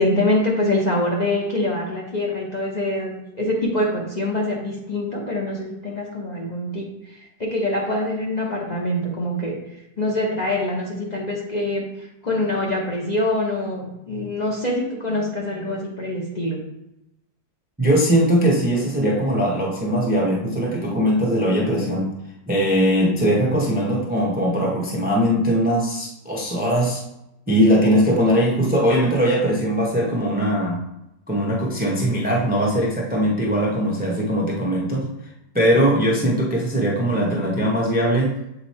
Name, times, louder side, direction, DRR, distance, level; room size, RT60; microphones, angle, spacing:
voice 1, 0.0-9.6 10.0-16.6, left 1 dB, 30° left, -3 dB, 0.9 m, -24 dB
voice 2, 17.8-22.2 22.5-27.0 27.5-30.8 31.3-35.1 35.5-38.3, equal, 10° right, -3 dB, 0.5 m, -20 dB
7.3 x 3.0 x 4.2 m, 0.86 s
omnidirectional pair, 1.8 m